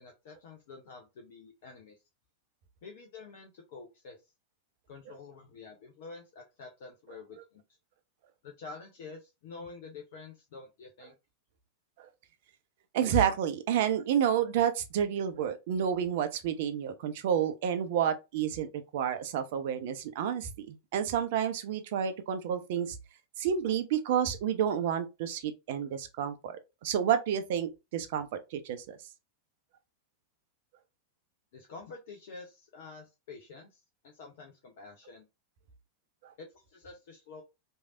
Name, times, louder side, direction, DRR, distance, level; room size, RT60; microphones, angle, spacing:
voice 1, 0.0-2.0 2.8-4.3 4.9-7.6 8.4-11.1 31.5-33.8 34.0-35.2 36.4-37.4, left 4 dB, 55° left, 0.6 m, -48 dB
voice 2, 12.9-23.0 23.4-29.0 36.2-36.3, right 9 dB, 50° right, 0.5 m, -30 dB
3.2 x 2.7 x 2.4 m
figure-of-eight pair, 90°, 0 cm